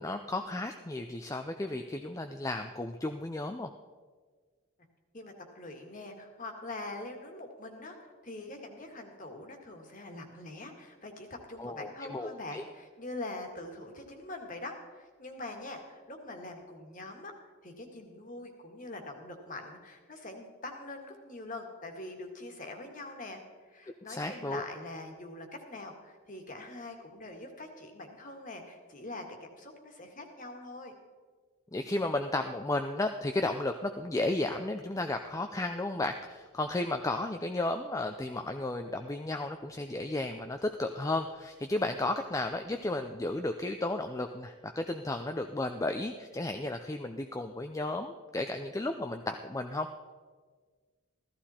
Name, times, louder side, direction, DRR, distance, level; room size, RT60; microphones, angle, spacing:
voice 1, 0.0-3.7 11.6-12.6 24.1-24.6 31.7-49.9, left 2 dB, 15° left, 6 dB, 0.4 m, -33 dB
voice 2, 5.1-17.3 17.6-29.2 29.5-30.9, left 2 dB, 35° left, 3 dB, 1.8 m, -44 dB
15.0 x 14.0 x 4.3 m, 1.5 s
head